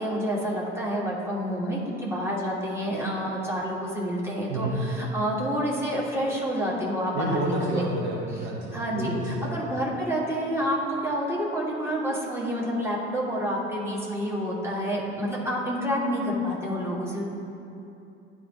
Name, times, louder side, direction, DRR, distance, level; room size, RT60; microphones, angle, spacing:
voice 1, 0.0-7.9 8.7-17.2, equal, 5° right, -5 dB, 1.7 m, -28 dB
voice 2, 7.1-9.8, right 1 dB, 60° right, -1 dB, 0.9 m, -30 dB
11.0 x 4.8 x 2.9 m, 2.7 s
figure-of-eight pair, 60°, 34 cm